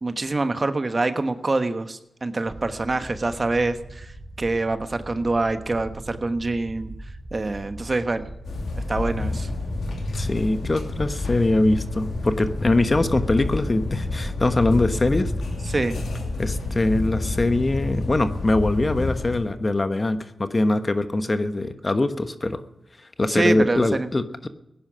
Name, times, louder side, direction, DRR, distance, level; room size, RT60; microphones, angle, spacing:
voice 1, 0.0-4.1 4.4-6.9 7.3-8.3 8.9-9.5 15.7-16.0 23.3-24.1, right 2 dB, 40° right, 9 dB, 1.2 m, -25 dB
sound 1, 2.5-17.5, right 1 dB, 60° right, 4.2 m, -41 dB
sound 2, 8.4-19.4, left 2 dB, 85° left, 2.8 m, -29 dB
voice 2, 10.2-15.3 16.4-22.6 23.2-24.5, left 2 dB, 35° left, 9 dB, 1.2 m, -22 dB
17.0 x 10.5 x 6.2 m, 0.88 s
cardioid pair, 55°, 0 cm